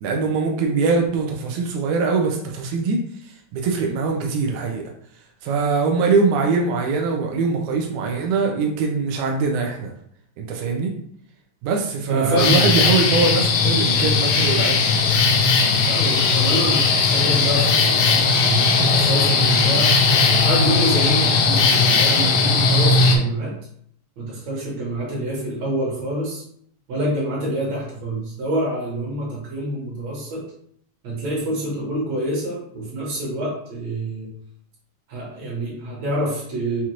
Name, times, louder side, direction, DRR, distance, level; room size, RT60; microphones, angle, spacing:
voice 1, 0.0-3.0 3.5-4.9 5.4-9.9 10.4-10.9 11.6-14.8, right 4 dB, 90° right, 1 dB, 2.0 m, -22 dB
voice 2, 12.1-12.7 15.9-19.9 20.4-23.5 24.2-26.4 26.9-30.4 31.0-34.3 35.1-36.9, right 1 dB, 65° right, -4 dB, 2.5 m, -26 dB
sound 1, 12.4-23.2, left 4 dB, 75° left, 1.6 m, -18 dB
5.8 x 2.4 x 2.9 m, 0.66 s
omnidirectional pair, 3.4 m